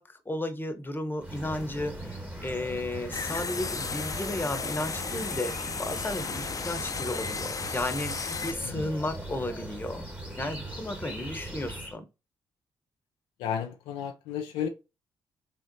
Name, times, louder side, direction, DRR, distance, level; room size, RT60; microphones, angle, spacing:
voice 1, 0.0-10.1 10.4-12.1, left 1 dB, 20° left, 1.0 m, -34 dB
sound 1, 1.2-12.0, right 1 dB, 15° right, 1.4 m, -40 dB
sound 2, 3.1-8.5, left 4 dB, 40° left, 0.6 m, -34 dB
voice 2, 8.6-8.9 13.4-14.7, left 8 dB, 85° left, 0.4 m, -33 dB
3.9 x 3.7 x 2.7 m
hypercardioid pair, 45°, 9 cm